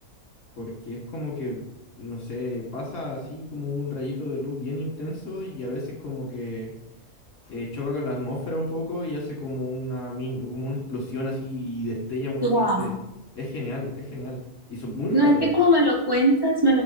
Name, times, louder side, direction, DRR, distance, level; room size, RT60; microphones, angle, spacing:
voice 1, 0.6-1.6 2.0-6.7 7.4-12.9 13.4-14.4 14.7-15.5, left 1 dB, 70° left, -2 dB, 2.0 m, -31 dB
voice 2, 12.4-12.9 15.1-16.8, equal, 20° right, -3 dB, 0.9 m, -20 dB
7.1 x 3.9 x 4.1 m, 0.86 s
omnidirectional pair, 1.4 m